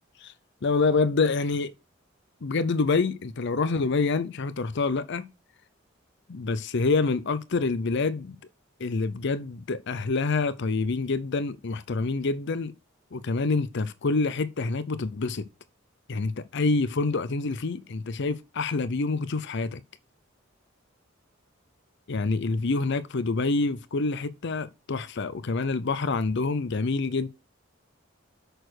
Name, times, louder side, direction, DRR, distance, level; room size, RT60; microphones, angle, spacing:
voice 1, 0.6-1.7 2.4-5.3 6.3-8.4 8.8-12.7 13.1-15.5 16.1-19.8 22.1-27.3, left 3 dB, 60° left, 0.6 m, -27 dB
6.6 x 6.4 x 6.5 m
head